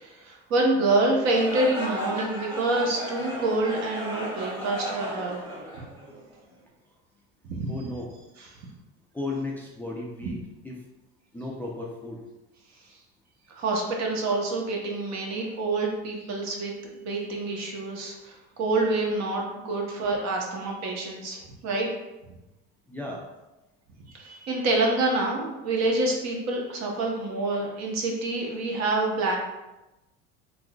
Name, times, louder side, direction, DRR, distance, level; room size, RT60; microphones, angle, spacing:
voice 1, 0.0-5.4 7.5-7.7 13.5-21.9 24.1-29.4, right 2 dB, 55° right, 0 dB, 1.0 m, -27 dB
sound 1, 1.2-6.4, right 1 dB, 15° right, 1.3 m, -35 dB
voice 2, 7.7-8.1 9.1-10.8 11.3-12.2 22.9-23.3, left 2 dB, 5° left, -2 dB, 0.4 m, -35 dB
3.6 x 2.9 x 2.3 m, 1.0 s
supercardioid pair, 95°, 33 cm